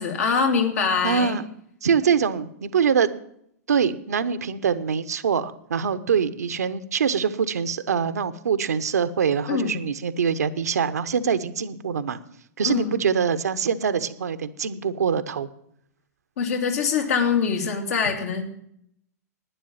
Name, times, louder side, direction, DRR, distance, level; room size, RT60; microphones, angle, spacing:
voice 1, 0.0-1.4 9.5-9.8 12.6-13.0 16.4-18.5, left 6 dB, 65° left, 2 dB, 2.7 m, -24 dB
voice 2, 1.0-1.5 1.8-3.1 3.7-12.2 12.6-15.5, right 7 dB, 70° right, 12 dB, 0.9 m, -24 dB
11.5 x 9.7 x 7.3 m, 0.72 s
figure-of-eight pair, 105°, 9 cm